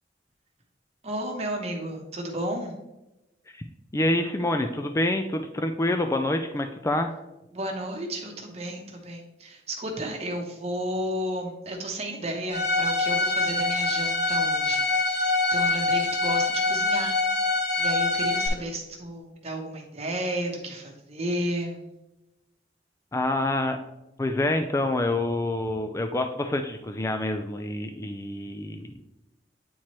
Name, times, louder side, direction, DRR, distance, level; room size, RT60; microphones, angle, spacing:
voice 1, 1.0-2.8 7.5-17.2 17.8-21.9, right 1 dB, 35° right, 2 dB, 0.9 m, -33 dB
voice 2, 3.9-7.1 23.1-23.8 24.2-28.9, left 1 dB, 15° left, 6 dB, 0.4 m, -27 dB
Bowed string instrument, 12.5-18.5, left 3 dB, 40° left, 1.2 m, -25 dB
8.7 x 4.4 x 3.1 m, 0.94 s
head